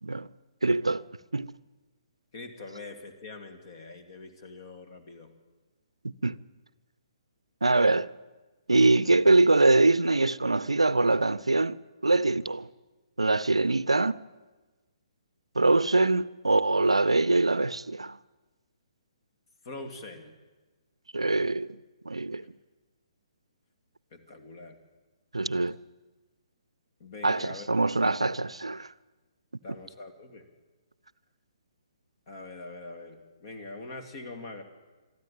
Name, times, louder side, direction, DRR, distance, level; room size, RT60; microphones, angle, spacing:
voice 1, 0.6-1.1 1.3-1.5 6.0-6.4 7.6-8.1 8.7-12.7 13.2-14.2 15.6-18.2 21.1-21.8 22.1-22.4 25.3-25.8 27.2-28.9, right 2 dB, 75° right, 0.6 m, -23 dB
voice 2, 2.3-5.3 19.6-20.3 24.1-24.7 27.0-27.7 29.6-30.4 32.3-34.6, left 3 dB, 40° left, 2.5 m, -43 dB
22.0 x 13.5 x 9.1 m
figure-of-eight pair, 130°, 3 cm